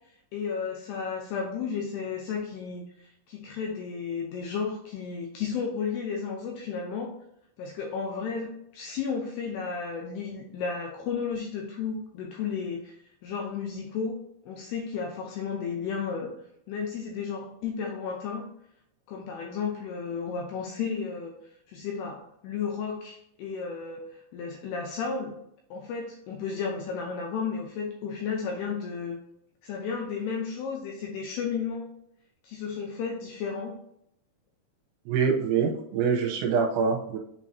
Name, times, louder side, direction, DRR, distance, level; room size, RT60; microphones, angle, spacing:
voice 1, 0.3-7.1 7.6-13.0 13.2-14.2 14.4-16.3 16.7-18.5 19.1-21.4 21.7-25.4 25.7-29.2 29.6-31.9 32.4-33.7, left 5 dB, 80° left, 1 dB, 2.4 m, -33 dB
voice 2, 35.1-37.2, right 6 dB, 85° right, 2 dB, 3.0 m, -25 dB
8.3 x 4.3 x 2.7 m, 0.73 s
omnidirectional pair, 5.5 m